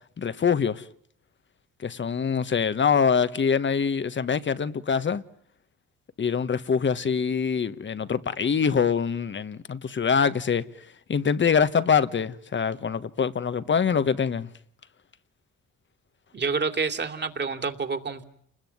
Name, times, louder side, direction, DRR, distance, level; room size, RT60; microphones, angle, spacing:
voice 1, 0.2-0.8 1.8-5.2 6.2-10.6 11.1-14.5, left 6 dB, 40° left, 1.3 m, -24 dB
voice 2, 16.3-18.2, right 4 dB, 35° right, 2.9 m, -28 dB
29.5 x 21.0 x 9.6 m
cardioid pair, 90°, 30 cm